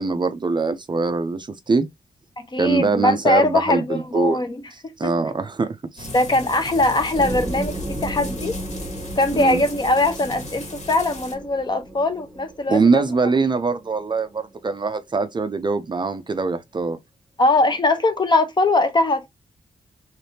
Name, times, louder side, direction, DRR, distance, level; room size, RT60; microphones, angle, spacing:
voice 1, 0.0-1.9 2.6-4.4 5.0-6.1 9.3-9.6 12.7-17.0, right 4 dB, 30° right, 0.5 m, -22 dB
voice 2, 2.4-4.6 5.0-5.1 6.1-8.5 9.2-13.0 17.4-19.3, left 2 dB, 30° left, 0.8 m, -21 dB
sound 1, 6.0-11.3, left 2 dB, 50° left, 1.6 m, -37 dB
sound 2, 7.1-14.5, right 1 dB, 10° right, 0.9 m, -34 dB
3.4 x 3.2 x 2.7 m
wide cardioid pair, 115°, 15 cm